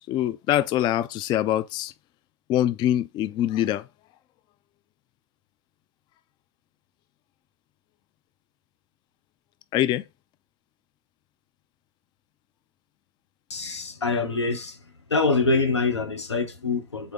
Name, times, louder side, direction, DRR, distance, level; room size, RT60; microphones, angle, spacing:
voice 1, 0.1-1.9 2.5-3.8 9.7-10.0, left 12 dB, 35° left, 0.4 m, -24 dB
voice 2, 13.5-14.8 15.1-17.1, left 3 dB, 85° left, 1.2 m, -25 dB
4.5 x 4.1 x 5.1 m
figure-of-eight pair, 90°, 14 cm